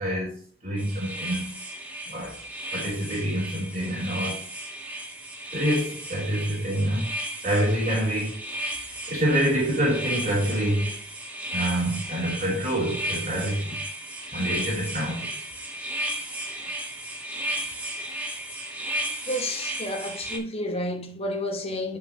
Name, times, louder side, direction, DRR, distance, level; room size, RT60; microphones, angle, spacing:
voice 1, 0.0-1.5 2.1-2.4 2.7-4.4 5.5-7.1 7.4-8.4 8.9-11.0 11.5-13.8 14.3-15.3, right 1 dB, 35° right, 3.8 m, -26 dB
sound 1, 0.8-20.4, right 1 dB, 10° right, 1.2 m, -34 dB
voice 2, 19.2-22.0, left 1 dB, 30° left, 1.2 m, -30 dB
9.8 x 5.8 x 2.9 m
head